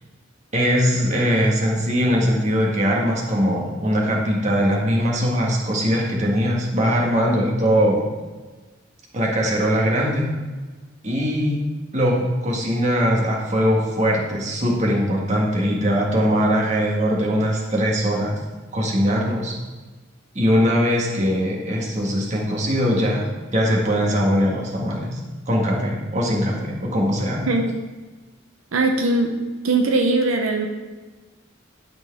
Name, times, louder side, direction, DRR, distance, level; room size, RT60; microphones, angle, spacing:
voice 1, 0.5-8.1 9.1-10.3 11.0-11.6 11.9-18.4 18.7-19.6 20.4-23.3 23.5-25.2 25.5-27.4, equal, 35° right, -2 dB, 1.6 m, -21 dB
voice 2, 28.7-29.3 29.6-30.7, right 2 dB, 85° right, 2 dB, 0.7 m, -20 dB
12.0 x 4.6 x 3.5 m, 1.3 s
head